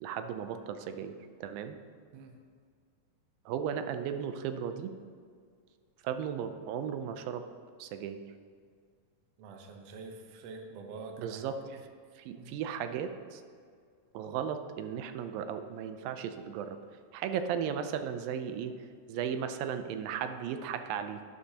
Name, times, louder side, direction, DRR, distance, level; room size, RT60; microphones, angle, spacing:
voice 1, 0.0-1.2 1.4-1.8 3.5-4.9 6.0-7.4 7.8-8.2 11.2-11.5 12.2-13.4 14.1-16.8 17.1-18.7 19.1-21.2, right 8 dB, 85° right, 9 dB, 2.4 m, -35 dB
voice 2, 9.4-11.8 12.4-12.5, right 4 dB, 65° right, 3 dB, 1.6 m, -46 dB
11.5 x 11.5 x 2.9 m, 2.1 s
omnidirectional pair, 4.0 m